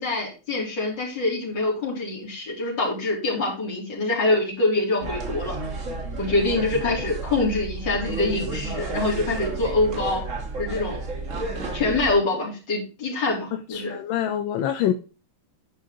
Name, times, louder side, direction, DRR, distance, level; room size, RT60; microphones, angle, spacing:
voice 1, 0.0-5.6 6.2-10.2 10.6-11.0 11.7-13.9, left 2 dB, 60° left, -3 dB, 4.0 m, -25 dB
sound 1, 5.0-12.1, right 3 dB, 40° right, 1.7 m, -32 dB
voice 2, 13.7-14.9, left 10 dB, 80° left, 9 dB, 1.4 m, -25 dB
10.5 x 5.7 x 3.8 m, 0.34 s
omnidirectional pair, 2.2 m